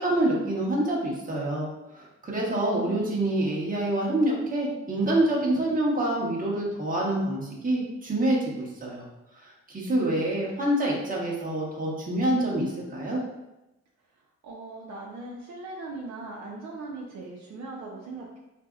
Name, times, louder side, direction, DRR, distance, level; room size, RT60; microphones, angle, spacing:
voice 1, 0.0-1.7 1.9-9.0 9.3-13.2, right 1 dB, 25° right, -4 dB, 1.1 m, -26 dB
voice 2, 2.5-3.1 14.1-18.4, right 2 dB, 65° right, -2 dB, 0.6 m, -40 dB
4.0 x 2.6 x 2.4 m, 0.95 s
cardioid pair, 90°, 30 cm